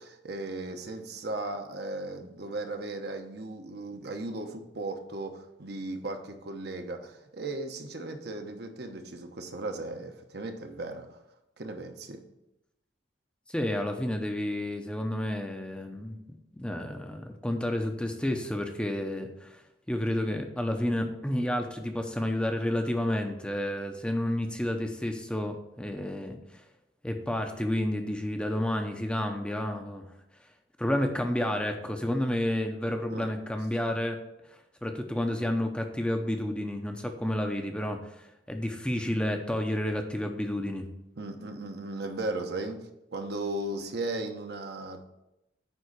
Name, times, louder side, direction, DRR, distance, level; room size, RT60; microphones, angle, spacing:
voice 1, 0.0-11.2 11.6-12.2 33.1-33.3 41.2-42.8 43.1-45.1, right 2 dB, 60° right, 5 dB, 1.0 m, -36 dB
voice 2, 13.5-16.2 16.5-19.6 19.9-26.6 27.0-30.1 30.8-34.2 34.5-40.9, left 1 dB, 5° left, 4 dB, 0.7 m, -30 dB
9.2 x 3.7 x 6.7 m, 0.89 s
head